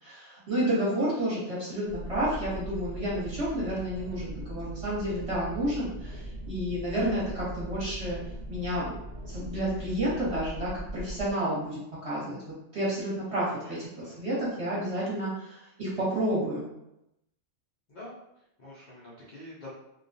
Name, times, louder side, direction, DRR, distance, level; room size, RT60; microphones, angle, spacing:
voice 1, 0.0-8.2 8.5-12.4 12.7-13.8 14.0-16.7, right 1 dB, 30° right, -8 dB, 0.8 m, -30 dB
sound 1, 1.9-11.3, right 1 dB, 65° right, 0.8 m, -40 dB
voice 2, 13.5-14.2 17.9-18.2 18.6-19.7, left 1 dB, 80° left, -7 dB, 0.4 m, -46 dB
2.3 x 2.2 x 2.6 m, 0.86 s
omnidirectional pair, 1.5 m